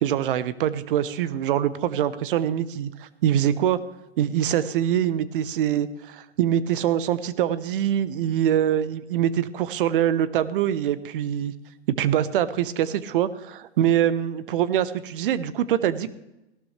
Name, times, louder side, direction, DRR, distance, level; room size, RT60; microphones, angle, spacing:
voice 1, 0.0-3.8 4.2-11.5 12.0-16.1, right 10 dB, 55° right, 15 dB, 1.0 m, -24 dB
17.0 x 12.5 x 3.3 m, 0.94 s
hypercardioid pair, 115°, 32 cm